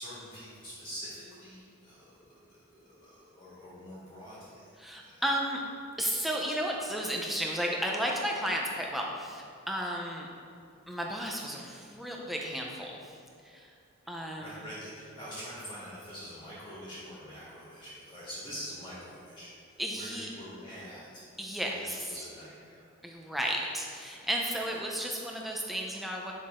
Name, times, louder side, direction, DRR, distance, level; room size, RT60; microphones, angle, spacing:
voice 1, 0.0-4.7 5.0-5.2 14.0-21.2 21.6-22.8, equal, 20° left, -9 dB, 1.9 m, -45 dB
voice 2, 4.8-5.6 6.0-10.3 10.9-13.2 13.4-13.7 14.1-14.6 19.8-20.3 21.4-22.2 23.0-26.3, equal, ahead, -1 dB, 0.7 m, -33 dB
9.8 x 6.1 x 3.7 m, 2.4 s
head